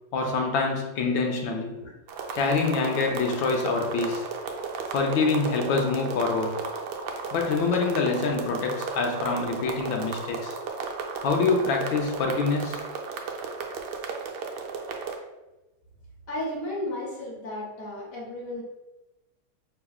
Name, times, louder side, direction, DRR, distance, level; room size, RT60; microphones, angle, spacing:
voice 1, 0.1-1.8 2.3-4.3 4.9-6.6 7.3-10.6 11.2-12.8, left 4 dB, 75° left, 2 dB, 1.3 m, -25 dB
sound 1, 2.1-15.2, right 5 dB, 75° right, 1.0 m, -34 dB
voice 2, 16.3-18.6, left 1 dB, 50° left, -3 dB, 1.1 m, -34 dB
5.8 x 3.4 x 2.3 m, 1.0 s
omnidirectional pair, 2.3 m